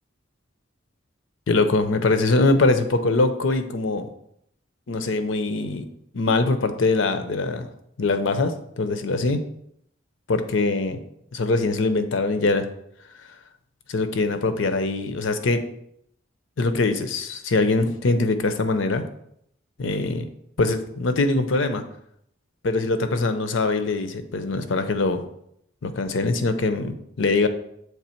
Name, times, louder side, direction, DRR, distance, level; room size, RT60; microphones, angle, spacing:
voice 1, 1.5-4.1 4.9-5.9 6.1-7.7 8.0-9.4 10.3-11.0 11.3-12.7 13.9-15.7 16.6-19.0 19.8-20.2 20.6-21.8 22.6-25.2 25.8-27.5, left 3 dB, 70° left, 9 dB, 0.6 m, -22 dB
7.3 x 3.4 x 4.4 m, 0.73 s
head